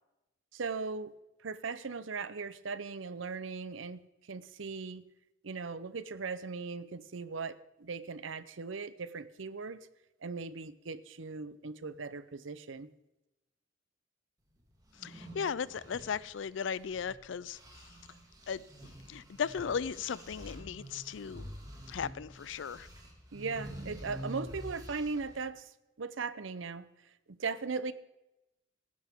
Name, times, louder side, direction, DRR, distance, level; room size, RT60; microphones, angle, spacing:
voice 1, 0.5-1.1 1.4-5.0 5.4-9.9 10.2-12.9 23.3-27.9, right 4 dB, 80° right, 15 dB, 0.7 m, -39 dB
sound 1, 14.8-17.2 17.5-25.4, right 1 dB, 20° right, 2.2 m, -47 dB
voice 2, 15.0-17.6 18.5-18.6 19.1-21.5 21.9-22.9, left 7 dB, 70° left, 20 dB, 0.4 m, -36 dB
17.0 x 11.0 x 3.6 m, 0.93 s
head